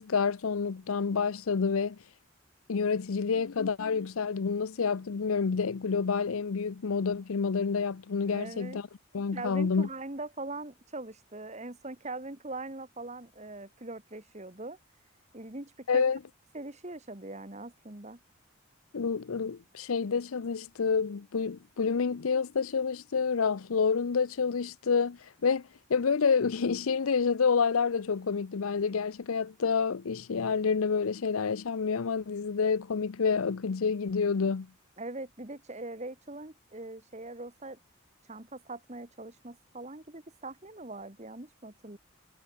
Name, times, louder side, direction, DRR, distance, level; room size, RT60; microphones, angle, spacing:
voice 1, 0.0-2.0 2.7-8.9 9.1-9.9 15.9-16.2 18.9-34.7, left 5 dB, 80° left, 0.6 m, -28 dB
voice 2, 8.3-8.8 9.3-14.8 15.3-16.0 16.5-18.2 35.0-37.8 38.3-42.0, right 2 dB, 30° right, 1.7 m, -41 dB
head